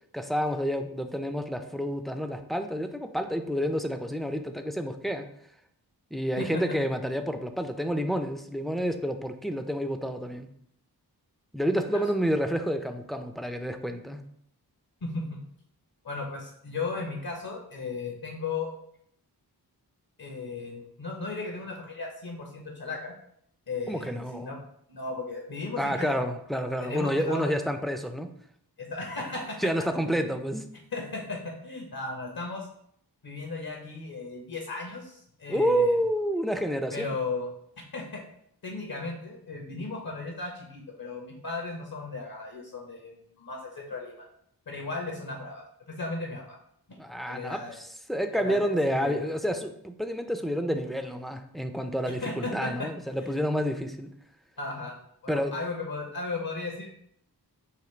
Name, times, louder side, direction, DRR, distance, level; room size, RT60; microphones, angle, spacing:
voice 1, 0.1-5.3 6.1-10.5 11.5-14.2 23.9-24.5 25.8-28.3 29.6-30.7 35.5-37.2 47.0-47.6 48.1-54.1 55.3-55.5, equal, ahead, 6 dB, 0.3 m, -29 dB
voice 2, 15.0-15.4 16.0-18.7 20.2-23.1 23.7-24.6 24.9-26.2 26.8-27.6 28.8-29.7 30.1-30.4 30.9-32.7 33.2-36.0 36.9-37.5 37.9-38.2 38.6-44.3 44.7-46.6 47.3-47.8 48.3-49.4 52.2-52.9 53.2-53.3 54.6-55.0 55.2-56.9, left 3 dB, 60° left, 1 dB, 0.8 m, -36 dB
5.0 x 2.5 x 3.1 m, 0.68 s
wide cardioid pair, 50°, 40 cm